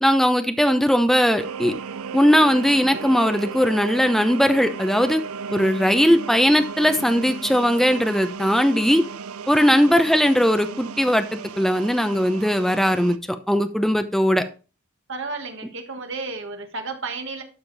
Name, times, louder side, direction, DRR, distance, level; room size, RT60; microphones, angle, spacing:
voice 1, 0.0-1.7 2.1-5.2 5.5-9.0 9.5-13.2 13.5-14.4, equal, ahead, 8 dB, 0.7 m, -19 dB
sound 1, 1.4-13.2, right 6 dB, 80° right, 0.5 m, -35 dB
voice 2, 15.1-17.4, right 3 dB, 60° right, 5 dB, 1.6 m, -32 dB
12.0 x 5.1 x 4.1 m, 0.34 s
head